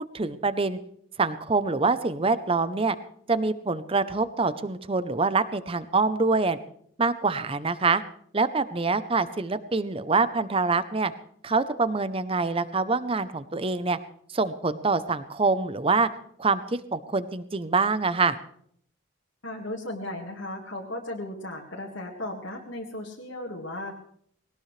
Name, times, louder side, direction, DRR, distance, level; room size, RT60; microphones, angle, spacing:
voice 1, 0.1-0.8 1.2-3.0 3.3-6.6 7.0-8.0 8.3-11.1 11.4-14.0 14.3-16.1 16.4-18.4, right 4 dB, 25° right, 14 dB, 0.7 m, -25 dB
voice 2, 19.4-24.0, left 1 dB, 65° left, -1 dB, 1.8 m, -36 dB
20.0 x 18.0 x 3.3 m, 0.65 s
head